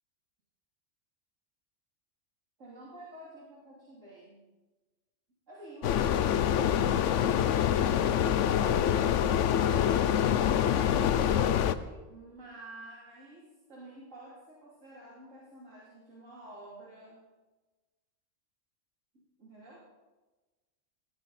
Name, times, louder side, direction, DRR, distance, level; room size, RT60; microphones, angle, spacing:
voice 1, 2.6-4.5 5.5-8.9 9.5-17.2 19.1-19.9, right 1 dB, 75° right, -6 dB, 3.4 m, -50 dB
sound 1, 5.8-11.7, left 9 dB, 75° left, 1.0 m, -25 dB
18.0 x 15.0 x 4.2 m, 1.2 s
omnidirectional pair, 1.3 m